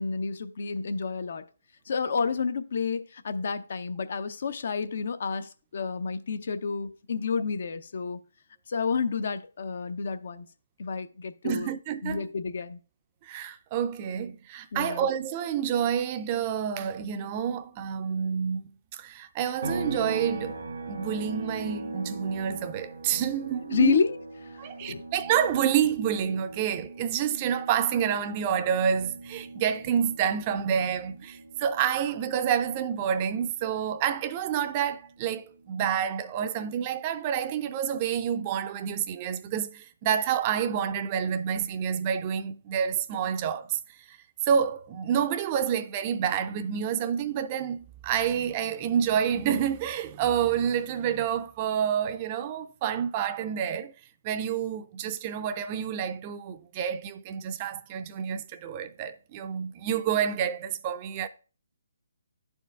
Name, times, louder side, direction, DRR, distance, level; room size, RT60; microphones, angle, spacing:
voice 1, 0.0-1.4 1.9-8.2 8.7-10.5 10.8-11.7 12.0-12.8 14.7-15.0 23.7-24.2 24.9-25.0, left 5 dB, 60° left, 0.6 m, -29 dB
voice 2, 11.4-12.3 13.2-24.0 24.6-44.2 44.4-53.9 54.2-61.3, right 8 dB, 30° right, 0.4 m, -28 dB
sound 1, 19.6-33.2 33.5-35.7, right 2 dB, 75° right, 1.0 m, -40 dB
11.5 x 4.4 x 2.3 m
hypercardioid pair, 150°, 0 cm